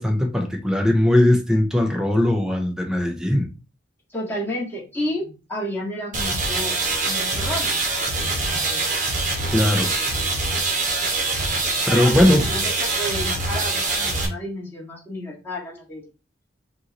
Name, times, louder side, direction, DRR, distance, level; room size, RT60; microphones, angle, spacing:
voice 1, 0.0-3.5 9.5-9.9 11.9-12.5, left 1 dB, 5° right, 0.7 m, -19 dB
voice 2, 4.1-6.8 7.1-7.8 8.1-8.9 11.9-16.0, equal, 10° left, 1.9 m, -31 dB
sound 1, 6.1-14.3, right 3 dB, 45° right, 1.1 m, -24 dB
5.4 x 2.7 x 3.0 m
head